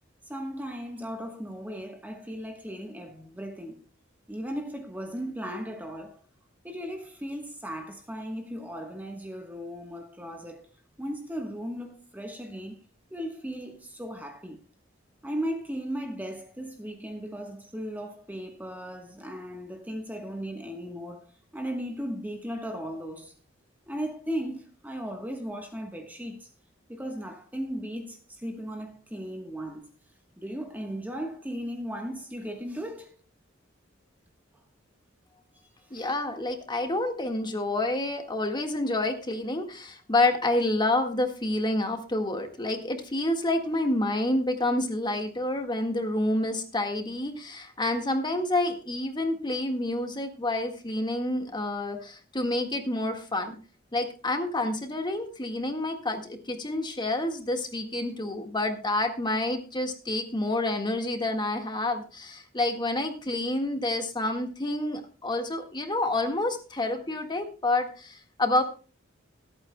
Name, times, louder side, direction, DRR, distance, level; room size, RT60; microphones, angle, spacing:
voice 1, 0.2-3.8 4.3-6.2 6.6-10.7 11.0-12.8 13.1-14.6 15.2-23.3 23.9-26.5 26.9-29.8 30.4-33.2 35.8-36.1, equal, 10° right, 1.2 m, -36 dB
voice 2, 35.9-53.6 53.9-68.6, left 2 dB, 25° left, 1.7 m, -28 dB
26.0 x 8.7 x 2.2 m
head